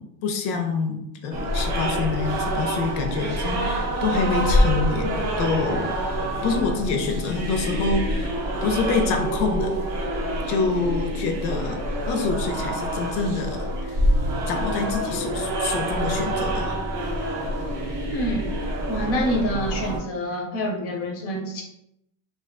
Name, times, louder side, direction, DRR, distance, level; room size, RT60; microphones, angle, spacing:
voice 1, 0.0-5.9 6.4-9.8 10.5-11.8 12.1-14.0 14.5-16.8, left 4 dB, 80° left, 4 dB, 0.6 m, -26 dB
sound 1, 1.3-20.0, equal, 40° right, 0.5 m, -26 dB
voice 2, 18.1-18.6 18.9-21.6, equal, 35° left, 0 dB, 0.5 m, -27 dB
2.4 x 2.3 x 2.4 m, 0.78 s
cardioid pair, 160°, 44 cm